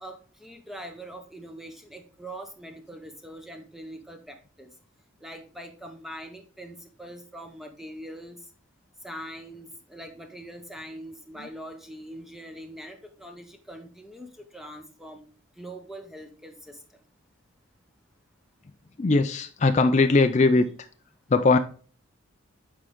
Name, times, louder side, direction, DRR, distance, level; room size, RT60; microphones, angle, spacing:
voice 1, 0.0-4.7 5.2-8.4 9.0-15.3 15.6-16.8, right 1 dB, ahead, 0.7 m, -42 dB
voice 2, 19.0-20.9 21.3-21.6, left 3 dB, 35° left, 0.4 m, -20 dB
7.6 x 4.8 x 3.6 m
head